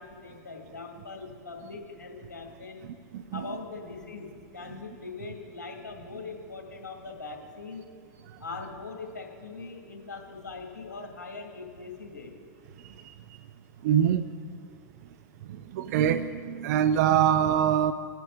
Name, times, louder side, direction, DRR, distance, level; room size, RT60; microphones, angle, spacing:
voice 1, 0.0-2.9 3.3-7.9 8.4-12.3, left 4 dB, 90° left, 2 dB, 2.0 m, -41 dB
voice 2, 13.8-14.3 15.5-17.9, right 9 dB, 65° right, 11 dB, 0.5 m, -24 dB
23.0 x 9.1 x 3.6 m, 2.1 s
hypercardioid pair, 100°, 10 cm